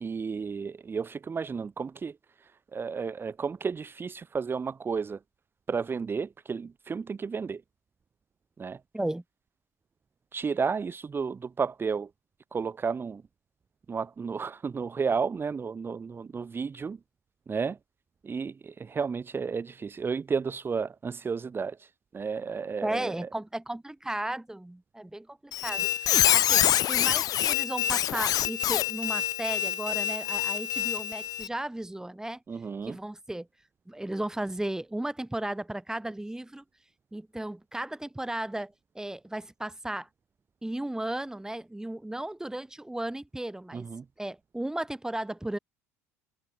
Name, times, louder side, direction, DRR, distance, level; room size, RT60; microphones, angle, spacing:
voice 1, 0.0-5.2 5.7-7.6 8.6-8.8 10.3-12.1 12.5-13.2 13.9-17.0 17.5-17.8 18.2-23.3 32.5-33.0 43.7-44.0, right 5 dB, 25° right, 1.3 m, -32 dB
voice 2, 22.8-32.4 32.9-33.5 33.9-36.6 37.1-40.1 40.6-43.9 44.2-45.6, right 1 dB, 5° right, 3.9 m, -35 dB
Squeak, 25.5-31.5, left 12 dB, 50° left, 0.7 m, -26 dB
hypercardioid pair, 70°, 8 cm